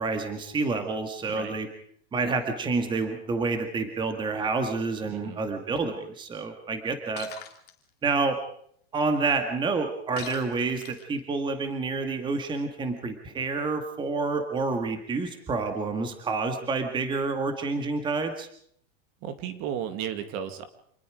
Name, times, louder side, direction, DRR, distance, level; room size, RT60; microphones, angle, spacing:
voice 1, 0.0-1.7 2.1-7.3 8.0-8.4 8.9-18.5, right 4 dB, 15° right, 6 dB, 2.0 m, -28 dB
voice 2, 5.0-5.4 19.2-20.6, right 9 dB, 45° right, 9 dB, 2.4 m, -34 dB
Shatter, 7.2-7.7 10.2-11.2, left 11 dB, 30° left, 2.5 m, -42 dB
27.0 x 19.5 x 5.1 m, 0.65 s
supercardioid pair, 160°, 31 cm